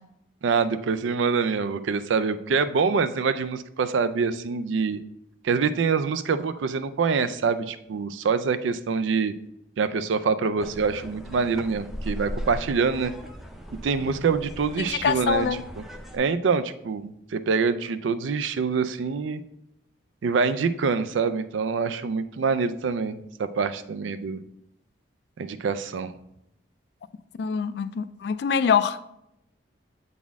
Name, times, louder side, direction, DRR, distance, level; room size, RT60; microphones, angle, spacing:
voice 1, 0.4-5.0 5.4-9.3 9.8-13.1 13.8-15.5 16.1-19.4 20.2-24.4 25.4-26.1, right 5 dB, 85° right, 12 dB, 0.4 m, -25 dB
sound 1, 10.6-16.2, equal, ahead, 0.5 m, -38 dB
voice 2, 14.8-15.6 27.4-29.0, left 7 dB, 60° left, 14 dB, 0.3 m, -24 dB
7.2 x 4.1 x 3.5 m, 0.80 s
head